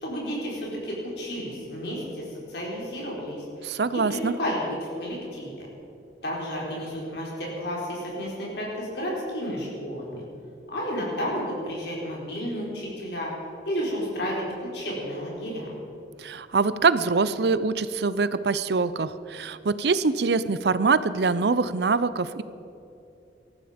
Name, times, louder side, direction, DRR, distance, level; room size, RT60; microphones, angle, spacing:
voice 1, 0.0-5.7 6.2-10.2 10.7-13.3 13.6-15.7, equal, 65° left, -4 dB, 4.3 m, -32 dB
voice 2, 3.6-4.3 16.2-22.4, right 4 dB, 65° right, 15 dB, 0.6 m, -24 dB
19.5 x 14.0 x 5.1 m, 2.7 s
head